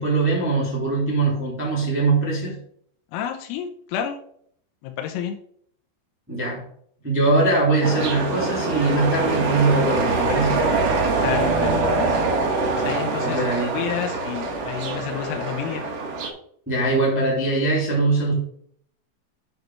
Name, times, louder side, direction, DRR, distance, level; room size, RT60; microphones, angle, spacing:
voice 1, 0.0-2.6 6.3-6.6 7.0-10.6 13.2-13.8 16.6-18.3, right 3 dB, 10° right, -4 dB, 0.7 m, -22 dB
voice 2, 3.1-4.2 4.8-5.4 11.2-12.2 12.8-13.4 13.7-15.8, left 9 dB, 85° left, 4 dB, 3.6 m, -30 dB
sound 1, 7.8-16.3, right 3 dB, 70° right, 1.5 m, -24 dB
9.4 x 5.2 x 4.6 m, 0.64 s
omnidirectional pair, 5.8 m